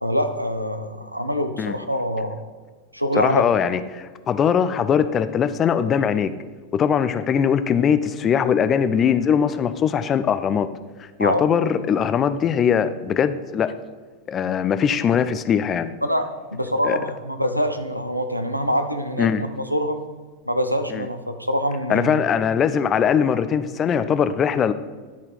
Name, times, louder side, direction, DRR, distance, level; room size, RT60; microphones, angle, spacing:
voice 1, 0.0-2.4 2.9-3.4 11.2-11.5 16.0-20.0 20.5-22.2, equal, 90° right, 8 dB, 0.6 m, -25 dB
voice 2, 3.2-6.3 6.7-10.7 11.0-13.7 14.3-15.9 16.8-17.0 19.2-19.4 20.9-21.0 21.9-24.7, left 7 dB, 25° left, 12 dB, 0.4 m, -21 dB
10.5 x 4.1 x 4.8 m, 1.4 s
figure-of-eight pair, 90°, 0 cm